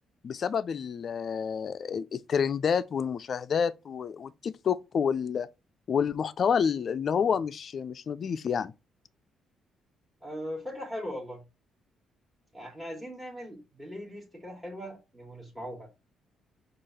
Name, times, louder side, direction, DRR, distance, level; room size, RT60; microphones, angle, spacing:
voice 1, 0.2-5.5 5.9-8.7, left 7 dB, 50° left, 0.3 m, -29 dB
voice 2, 10.2-11.4 12.5-15.9, equal, 10° right, 1.3 m, -39 dB
4.8 x 2.4 x 4.1 m
cardioid pair, 90°, 0 cm